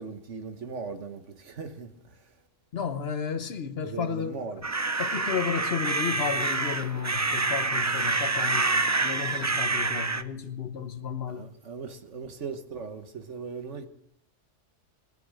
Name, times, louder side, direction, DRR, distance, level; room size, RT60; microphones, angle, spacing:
voice 1, 0.0-1.9 3.8-4.7 11.3-13.9, right 5 dB, 75° right, 1.7 m, -38 dB
voice 2, 2.7-4.4 5.0-11.5, left 7 dB, 55° left, 1.3 m, -33 dB
sound 1, 4.6-10.2, right 3 dB, 25° right, 0.3 m, -27 dB
21.0 x 9.4 x 6.4 m
omnidirectional pair, 1.2 m